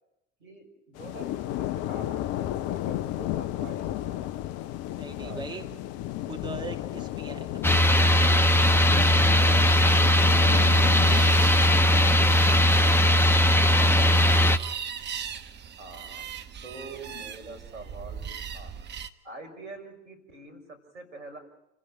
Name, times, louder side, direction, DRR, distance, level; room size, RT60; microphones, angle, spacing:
voice 1, 0.4-4.3 5.2-5.6 9.2-9.8 11.6-13.0 15.8-16.3 16.6-18.3 18.5-18.7 19.2-21.4, right 3 dB, 75° right, 7 dB, 6.1 m, -45 dB
sound 1, 1.0-11.3, left 14 dB, 40° left, 0.8 m, -33 dB
voice 2, 5.0-5.7 6.3-7.5 13.4-14.2, right 3 dB, 10° right, 3 dB, 2.6 m, -39 dB
sound 2, 7.6-14.6, left 1 dB, 5° left, 1.2 m, -19 dB
sound 3, 10.9-19.1, right 7 dB, 30° right, 1.5 m, -39 dB
29.5 x 15.5 x 9.1 m, 0.87 s
figure-of-eight pair, 75°, 36 cm